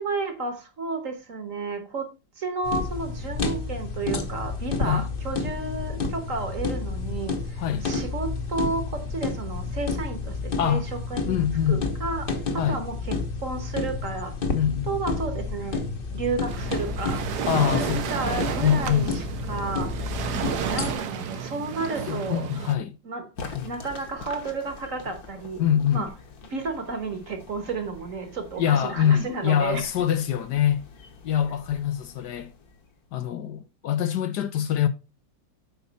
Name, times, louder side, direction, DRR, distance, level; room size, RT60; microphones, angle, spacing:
voice 1, 0.0-2.1 2.4-11.3 11.7-14.3 14.9-15.8 16.1-17.3 17.6-20.2 20.6-22.5 23.0-25.6 25.9-26.1 26.4-29.9, right 3 dB, 50° right, 1.5 m, -32 dB
sound 1, 2.6-21.0, left 4 dB, 40° left, 0.9 m, -30 dB
voice 2, 11.3-11.9 12.6-12.8 14.5-14.9 17.5-19.2 22.1-23.0 23.5-23.7 25.6-26.1 28.6-30.8 31.2-32.5 33.1-34.9, left 9 dB, 70° left, 1.2 m, -24 dB
Waves surf, 16.5-22.7, right 7 dB, 65° right, 1.4 m, -31 dB
sound 2, 23.3-33.2, left 4 dB, 55° left, 1.7 m, -45 dB
8.3 x 5.6 x 4.1 m
omnidirectional pair, 2.0 m